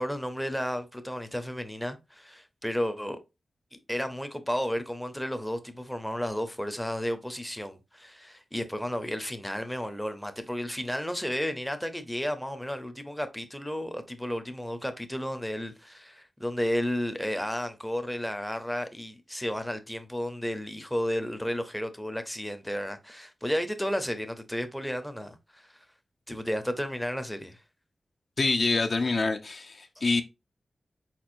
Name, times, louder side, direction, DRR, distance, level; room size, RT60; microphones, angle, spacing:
voice 1, 0.0-3.2 3.7-25.8 26.3-27.6, equal, 5° left, 0.6 m, -33 dB
voice 2, 28.4-30.2, left 3 dB, 50° left, 0.5 m, -26 dB
4.5 x 4.4 x 2.5 m
wide cardioid pair, 140°, 0 cm